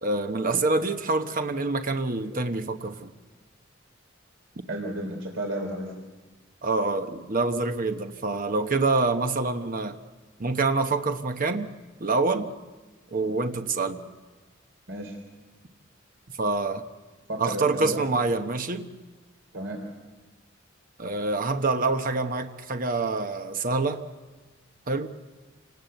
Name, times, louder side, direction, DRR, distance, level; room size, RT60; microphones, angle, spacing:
voice 1, 0.0-3.1 6.6-10.0 10.4-11.7 12.0-12.5 13.1-14.0 16.4-16.8 17.4-18.9 21.0-24.0 24.9-25.1, right 3 dB, 45° right, 6 dB, 1.1 m, -26 dB
voice 2, 4.7-5.9 14.9-15.2 17.3-18.0 19.5-19.8, right 1 dB, 75° right, 1 dB, 3.6 m, -32 dB
28.0 x 19.0 x 8.0 m, 1.3 s
head